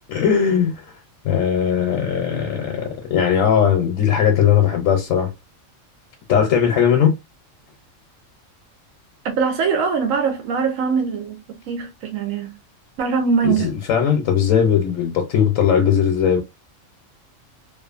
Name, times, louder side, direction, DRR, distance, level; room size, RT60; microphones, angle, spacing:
voice 1, 0.1-0.8 1.2-5.3 6.3-7.1 13.4-16.4, left 8 dB, 80° left, 1.0 m, -18 dB
voice 2, 9.2-12.5 13.0-13.7, right 5 dB, 85° right, 1.1 m, -22 dB
2.6 x 2.4 x 2.4 m
omnidirectional pair, 1.3 m